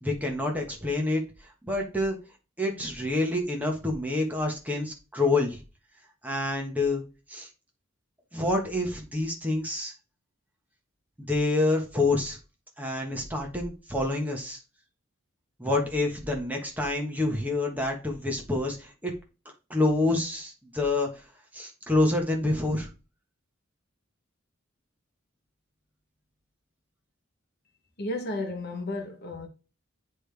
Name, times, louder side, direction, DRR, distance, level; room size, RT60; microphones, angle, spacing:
voice 1, 0.0-1.2 1.7-2.2 2.6-5.6 6.2-7.0 7.3-7.5 8.3-9.9 11.3-12.4 12.8-14.6 15.6-19.1 19.4-21.1 21.5-22.9, left 2 dB, 10° right, 1.3 m, -27 dB
voice 2, 28.0-29.5, left 2 dB, 50° left, 1.1 m, -33 dB
10.0 x 3.3 x 3.4 m
head